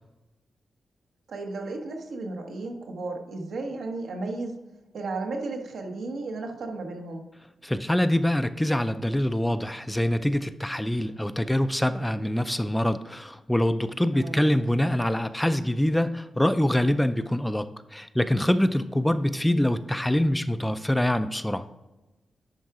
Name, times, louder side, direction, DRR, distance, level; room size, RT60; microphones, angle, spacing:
voice 1, 1.3-4.6 4.9-7.2 14.1-14.5, right 3 dB, 85° right, 2 dB, 1.2 m, -34 dB
voice 2, 7.6-21.7, left 1 dB, 5° left, 11 dB, 0.3 m, -25 dB
10.5 x 3.7 x 4.7 m, 1.0 s
wide cardioid pair, 125°, 0 cm